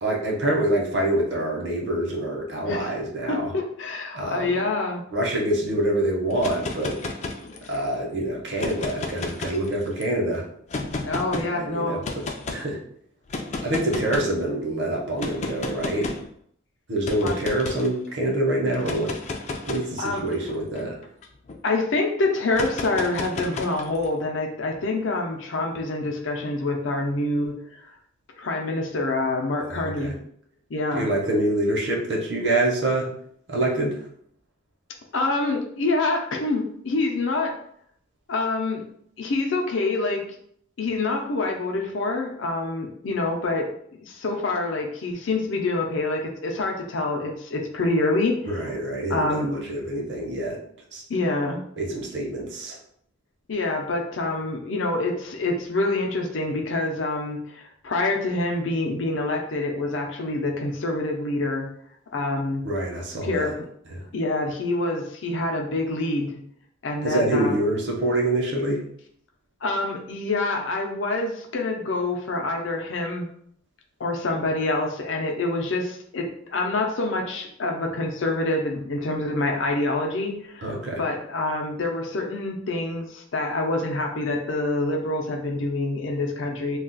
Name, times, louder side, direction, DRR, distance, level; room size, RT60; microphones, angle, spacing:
voice 1, 0.0-3.5 4.1-4.6 5.1-7.0 7.6-10.4 11.4-12.8 13.6-16.1 16.9-19.1 19.7-21.0 29.7-30.1 30.9-33.1 33.5-33.9 48.4-50.6 50.9-51.0 51.8-52.8 62.6-63.5 63.9-64.0 67.0-68.8 80.6-81.0, right 1 dB, 60° right, -1 dB, 0.8 m, -26 dB
voice 2, 3.3-5.0 11.1-12.0 17.2-17.4 20.0-20.2 21.6-27.9 28.4-30.2 30.7-31.1 35.1-37.5 38.3-38.8 39.2-40.2 40.8-43.7 44.1-48.5 49.1-49.5 51.1-51.6 53.5-61.7 62.1-62.6 63.2-63.5 64.1-66.4 66.8-67.6 69.6-73.3 74.0-80.7 81.0-86.8, left 2 dB, 75° left, 2 dB, 0.6 m, -26 dB
sound 1, 6.3-7.9 8.5-10.0 10.7-11.5 12.0-12.6 13.3-14.4 15.2-16.3 17.0-17.9 18.7-21.6 22.5-24.1, left 3 dB, 35° left, 0.3 m, -32 dB
2.4 x 2.3 x 3.8 m, 0.65 s
head